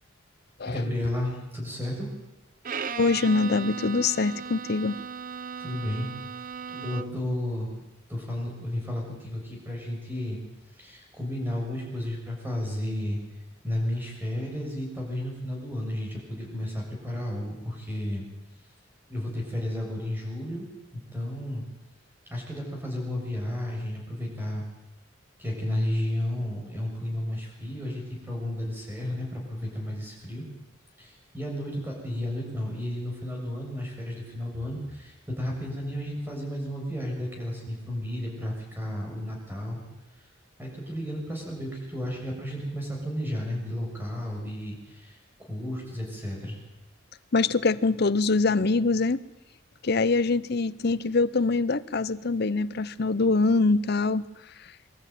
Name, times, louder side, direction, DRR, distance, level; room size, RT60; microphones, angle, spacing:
voice 1, 0.6-2.1 5.6-6.1 6.4-7.7 8.1-10.4 10.8-13.2 13.6-18.2 19.1-20.7 20.9-21.6 22.3-24.6 25.4-30.4 31.0-39.8 40.6-46.6, left 1 dB, 10° right, -1 dB, 6.8 m, -33 dB
Bowed string instrument, 2.6-7.3, right 6 dB, 45° right, 0.7 m, -36 dB
voice 2, 3.0-5.0 47.3-49.2 49.8-54.2, left 3 dB, 50° left, 15 dB, 0.7 m, -24 dB
24.0 x 13.0 x 9.2 m, 0.96 s
head